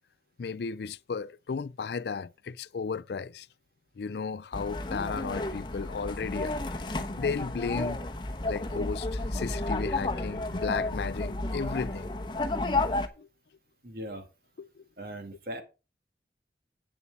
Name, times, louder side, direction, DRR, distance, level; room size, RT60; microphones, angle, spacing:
voice 1, 0.4-3.5 4.0-8.0 8.5-12.1 13.2-13.3 14.6-14.8, left 5 dB, 65° left, 0.4 m, -34 dB
sound 1, 4.5-13.1, left 2 dB, 25° left, 1.0 m, -32 dB
voice 2, 13.8-14.3 15.0-15.6, right 1 dB, 55° right, 2.2 m, -39 dB
8.7 x 6.9 x 5.5 m
head